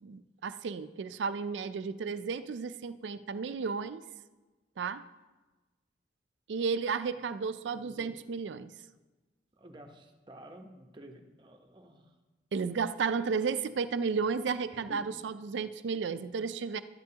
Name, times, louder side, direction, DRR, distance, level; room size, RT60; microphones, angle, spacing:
voice 1, 0.0-4.0 4.8-5.1 6.5-8.7 12.5-16.8, right 5 dB, 85° right, 13 dB, 0.4 m, -33 dB
voice 2, 7.7-8.1 9.6-12.1 14.7-15.1, equal, 25° right, 3 dB, 0.9 m, -51 dB
12.5 x 10.5 x 2.8 m, 1.2 s
head